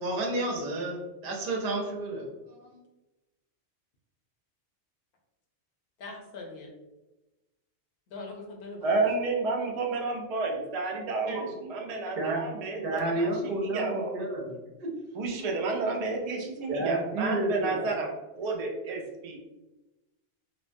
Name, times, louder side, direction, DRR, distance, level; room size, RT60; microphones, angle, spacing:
voice 1, 0.0-2.8 11.3-11.5 12.2-12.4 12.8-14.5 16.7-18.0, right 2 dB, 55° right, -1 dB, 0.7 m, -31 dB
voice 2, 6.0-6.7 8.1-9.0, left 3 dB, 65° left, 1 dB, 0.8 m, -41 dB
voice 3, 8.8-14.2 15.1-18.1 18.3-19.4, right 3 dB, 85° right, 0 dB, 0.3 m, -31 dB
3.0 x 2.1 x 2.5 m, 1.0 s
omnidirectional pair, 1.2 m